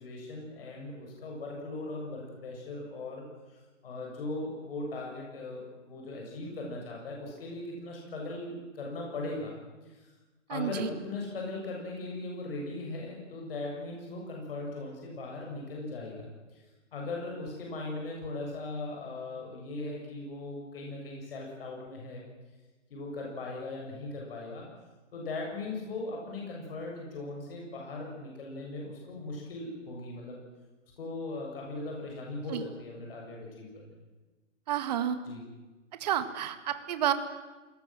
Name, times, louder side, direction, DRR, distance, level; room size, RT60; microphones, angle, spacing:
voice 1, 0.0-9.6 9.8-10.1 10.5-16.3 16.5-16.6 16.9-22.2 22.9-24.7 25.1-30.4 31.0-34.0 35.3-35.4, left 2 dB, 50° left, -1 dB, 7.8 m, -39 dB
voice 2, 10.5-10.9 32.5-32.6 34.7-35.2 36.0-37.1, right 11 dB, 35° right, 11 dB, 1.9 m, -30 dB
26.5 x 21.0 x 7.8 m, 1.2 s
hypercardioid pair, 160°, 38 cm